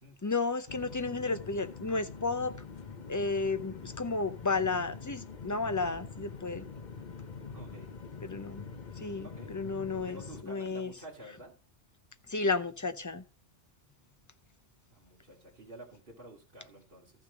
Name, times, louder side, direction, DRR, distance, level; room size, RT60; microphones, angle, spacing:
voice 1, 0.2-2.5 3.1-6.7 8.2-8.6 9.0-10.9 12.3-13.2, left 3 dB, 20° left, 0.6 m, -32 dB
sound 1, 0.7-10.4, left 5 dB, 45° left, 1.1 m, -45 dB
voice 2, 7.5-7.9 9.2-9.5 10.1-11.5 14.9-17.1, right 1 dB, 50° right, 2.8 m, -50 dB
14.0 x 6.3 x 5.0 m
omnidirectional pair, 1.1 m